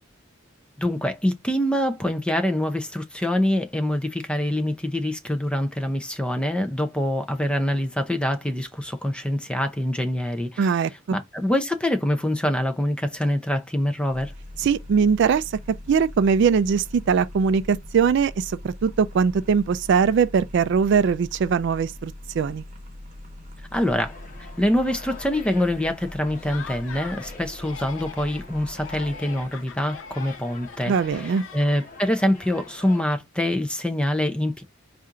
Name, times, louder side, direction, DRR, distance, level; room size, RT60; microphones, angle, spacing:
voice 1, 0.8-10.7 11.1-14.3 23.7-24.1 24.6-30.9 31.5-34.6, left 1 dB, 5° left, 0.5 m, -25 dB
voice 2, 10.6-11.2 14.6-15.6 15.9-22.6 30.9-31.4, right 6 dB, 60° right, 0.3 m, -21 dB
sound 1, 14.1-29.2, left 1 dB, 35° right, 1.1 m, -41 dB
sound 2, 23.7-33.0, left 3 dB, 40° left, 1.1 m, -45 dB
Laughter, 26.4-27.3 27.6-28.5 28.8-32.1, left 6 dB, 65° left, 0.7 m, -42 dB
4.3 x 2.5 x 3.7 m
head